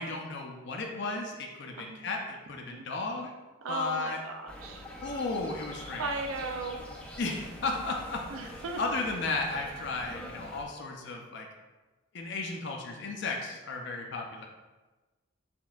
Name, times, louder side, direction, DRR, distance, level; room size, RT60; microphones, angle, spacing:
voice 1, 0.0-2.2 2.5-3.3 3.7-4.2 5.0-6.1 7.2-8.2 8.5-11.5 12.1-14.5, left 3 dB, 55° left, 1 dB, 0.5 m, -34 dB
voice 2, 1.7-2.1 2.7-2.9 3.6-4.8 6.0-6.8 8.3-8.8 12.5-13.1, right 3 dB, 75° right, 4 dB, 0.5 m, -38 dB
sound 1, 4.5-10.6, equal, 5° left, 0.5 m, -44 dB
6.0 x 3.6 x 2.4 m, 1.2 s
head